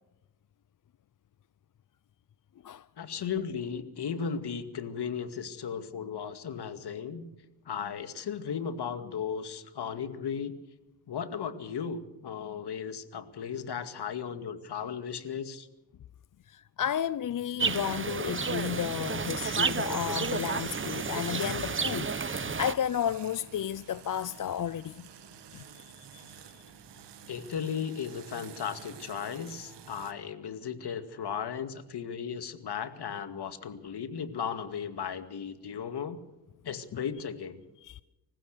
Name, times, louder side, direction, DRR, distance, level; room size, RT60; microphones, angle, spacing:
voice 1, 3.0-7.3 7.7-10.5 11.1-15.7 27.3-36.2 36.6-37.6, left 7 dB, 65° left, 2.3 m, -36 dB
voice 2, 16.5-25.1 25.5-26.2 26.5-26.6 36.9-37.0 37.8-38.0, left 9 dB, 50° left, 0.6 m, -33 dB
sound 1, 17.6-22.7, right 5 dB, 30° right, 0.9 m, -31 dB
sound 2, 18.6-30.1, right 8 dB, 75° right, 2.0 m, -50 dB
26.0 x 15.5 x 6.8 m
cardioid pair, 70°, 42 cm